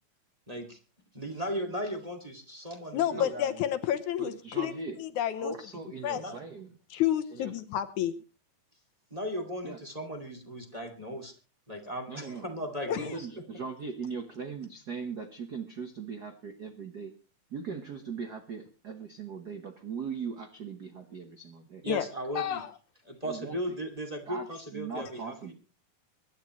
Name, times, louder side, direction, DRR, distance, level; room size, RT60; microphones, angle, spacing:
voice 1, 0.5-0.8 1.1-3.6 6.1-6.4 9.1-11.3 11.7-13.2 21.8-22.6 23.0-25.5, equal, 15° right, 3 dB, 2.1 m, -37 dB
voice 2, 2.9-4.7 5.0-5.5 6.0-6.2 6.9-8.1 12.9-13.0 21.9-22.1 22.4-22.7, left 11 dB, 70° left, 10 dB, 2.2 m, -29 dB
voice 3, 4.2-5.0 5.4-6.7 7.3-7.6 9.6-9.8 12.1-17.1 17.5-21.9 23.2-23.8 24.3-24.5 24.7-25.5, right 5 dB, 70° right, 6 dB, 0.9 m, -40 dB
24.5 x 11.5 x 3.1 m, 0.32 s
omnidirectional pair, 3.8 m